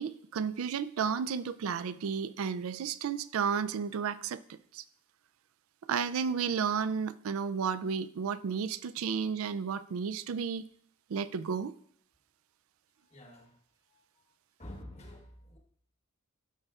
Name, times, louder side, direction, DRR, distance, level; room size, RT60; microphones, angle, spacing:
voice 1, 0.0-4.4 4.7-4.8 5.9-10.6 11.1-11.7, right 6 dB, 80° right, 0.4 m, -32 dB
voice 2, 13.1-13.6 13.9-14.0 14.6-15.6, left 1 dB, 30° left, 1.3 m, -48 dB
13.0 x 5.4 x 2.4 m
head